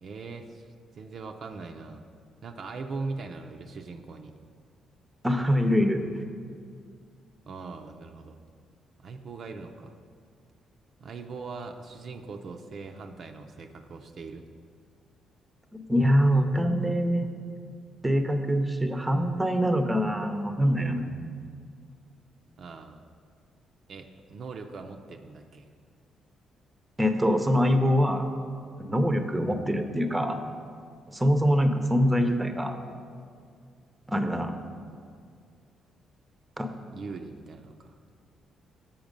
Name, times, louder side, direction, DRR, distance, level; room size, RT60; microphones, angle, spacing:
voice 1, 0.0-2.0 2.4-4.3 7.5-8.4 9.0-9.9 11.0-14.4 22.6-23.0 23.9-25.7 36.9-37.9, right 4 dB, 55° right, 4 dB, 0.5 m, -40 dB
voice 2, 5.2-6.0 15.7-17.3 18.0-21.1 27.0-28.3 28.8-30.4 31.1-32.8 34.1-34.6 36.6-36.7, equal, 15° right, 6 dB, 0.7 m, -24 dB
7.1 x 5.7 x 5.2 m, 2.2 s
cardioid pair, 90°, 0 cm